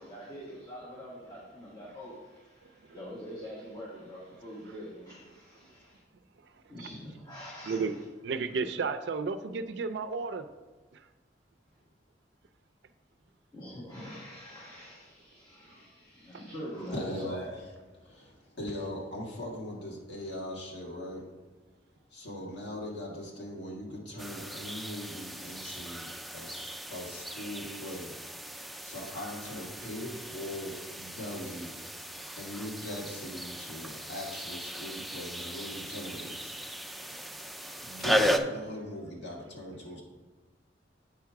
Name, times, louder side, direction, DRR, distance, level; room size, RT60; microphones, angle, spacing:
voice 1, 0.0-6.0 6.7-8.0 13.5-17.6 18.1-18.2, equal, 20° left, -6 dB, 1.4 m, -44 dB
voice 2, 8.2-10.4, right 4 dB, 75° right, 10 dB, 0.4 m, -32 dB
voice 3, 16.9-17.5 18.0-21.2 22.1-28.1 28.8-31.7 32.4-36.5 37.8-40.0, left 1 dB, 75° left, -3 dB, 2.0 m, -40 dB
sound 1, 24.2-38.4, equal, ahead, 0.4 m, -36 dB
7.9 x 4.8 x 4.6 m, 1.3 s
head